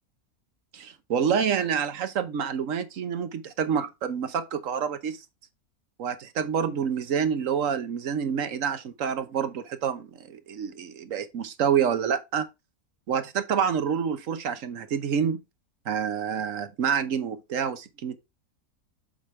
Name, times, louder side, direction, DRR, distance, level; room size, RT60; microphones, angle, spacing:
voice 1, 0.7-5.2 6.0-12.4 13.1-15.4 15.9-18.2, right 7 dB, 65° right, 1.3 m, -27 dB
7.7 x 5.1 x 3.2 m
omnidirectional pair, 1.5 m